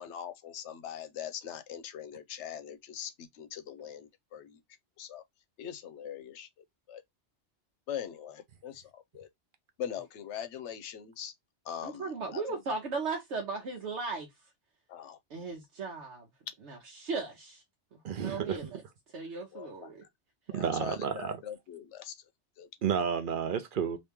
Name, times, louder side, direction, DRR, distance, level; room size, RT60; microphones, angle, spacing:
voice 1, 0.0-4.6 5.0-5.2 5.6-6.5 6.9-7.0 7.9-9.3 9.8-11.3 11.6-12.6 14.9-15.2 19.5-19.9 20.5-22.2 22.6-22.7, left 9 dB, 80° left, 0.9 m, -42 dB
voice 2, 11.8-14.3 15.3-16.3 16.6-17.6 17.9-18.8 19.1-20.0, right 4 dB, 75° right, 1.1 m, -37 dB
voice 3, 18.0-18.6 20.5-21.4 22.8-24.0, right 7 dB, 55° right, 0.7 m, -31 dB
2.9 x 2.8 x 3.4 m
omnidirectional pair, 1.2 m